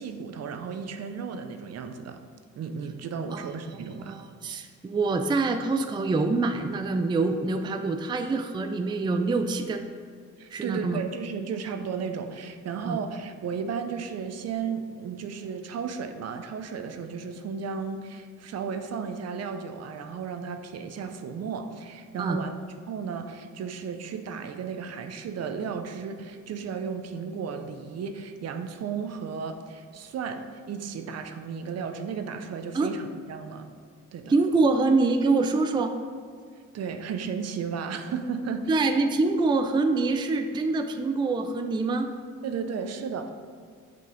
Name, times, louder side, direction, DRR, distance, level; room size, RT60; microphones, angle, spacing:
voice 1, 0.0-2.2 2.6-4.2 10.4-22.5 22.9-33.7 34.1-34.3 36.7-39.0 42.4-43.3, right 6 dB, 55° right, 7 dB, 0.6 m, -34 dB
voice 2, 4.1-9.9 10.5-11.0 12.8-13.0 22.2-22.4 32.7-32.9 34.3-35.9 38.7-42.1, right 3 dB, 15° right, 6 dB, 0.4 m, -25 dB
6.6 x 5.2 x 3.9 m, 2.1 s
cardioid pair, 90°, 30 cm